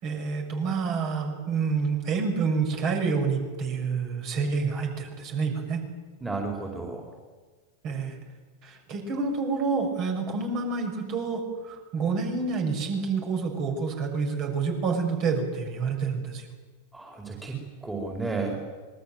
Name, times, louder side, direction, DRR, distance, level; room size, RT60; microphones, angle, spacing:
voice 1, 0.0-5.8 7.8-8.1 8.6-16.4, right 5 dB, 40° right, 3 dB, 6.3 m, -28 dB
voice 2, 6.2-7.1 16.9-18.6, right 3 dB, 10° right, 0 dB, 4.7 m, -33 dB
25.5 x 21.5 x 7.8 m, 1.4 s
figure-of-eight pair, 90°, 0 cm